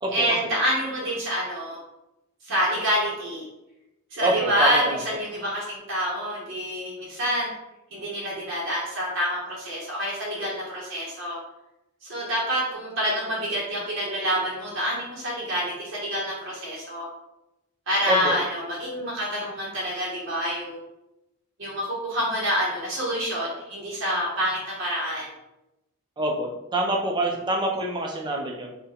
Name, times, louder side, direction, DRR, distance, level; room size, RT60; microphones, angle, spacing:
voice 1, 0.1-1.8 2.4-3.5 4.1-7.5 7.9-11.4 12.0-17.1 17.9-20.8 21.6-25.3, equal, 60° right, -4 dB, 0.7 m, -27 dB
voice 2, 4.2-5.0 18.1-18.4 26.2-28.7, right 1 dB, 20° right, 1 dB, 0.4 m, -26 dB
2.8 x 2.1 x 3.8 m, 0.92 s
head